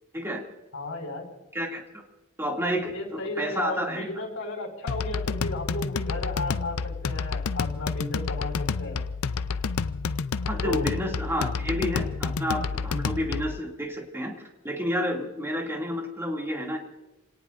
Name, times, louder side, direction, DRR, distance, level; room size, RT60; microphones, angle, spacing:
voice 1, 0.7-1.3 2.9-9.0 10.6-10.9, left 2 dB, 65° left, -1 dB, 4.9 m, -34 dB
voice 2, 2.4-4.1 10.5-14.3 14.6-16.8, equal, 10° right, 0 dB, 2.5 m, -30 dB
sound 1, 4.9-13.6, left 5 dB, 85° left, 0.5 m, -29 dB
29.0 x 18.0 x 2.6 m, 1.1 s
head